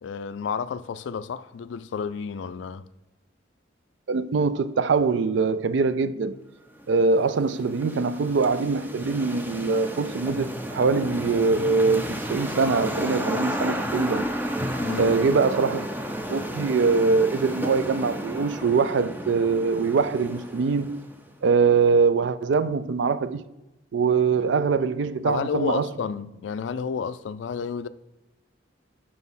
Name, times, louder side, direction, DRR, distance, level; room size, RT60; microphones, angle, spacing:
voice 1, 0.0-2.9 14.8-15.2 25.3-27.9, left 6 dB, 75° left, 0.3 m, -31 dB
voice 2, 4.1-6.4 6.9-14.3 15.0-15.9 16.3-21.0 21.4-23.4 23.9-25.9, right 4 dB, 70° right, 0.4 m, -23 dB
sound 1, 6.8-21.3, equal, 10° right, 0.5 m, -32 dB
6.1 x 5.0 x 5.5 m
head